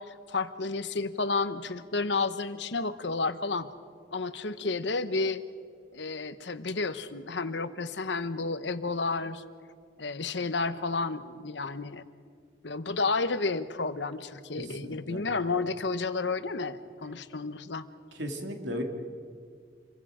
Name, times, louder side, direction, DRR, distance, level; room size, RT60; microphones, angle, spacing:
voice 1, 0.0-3.7 4.1-5.4 5.9-9.4 10.0-12.0 12.6-17.9, left 3 dB, 85° left, 12 dB, 1.1 m, -31 dB
voice 2, 14.6-15.2 18.1-18.8, equal, 85° right, 3 dB, 2.7 m, -36 dB
28.0 x 23.0 x 5.1 m, 2.1 s
head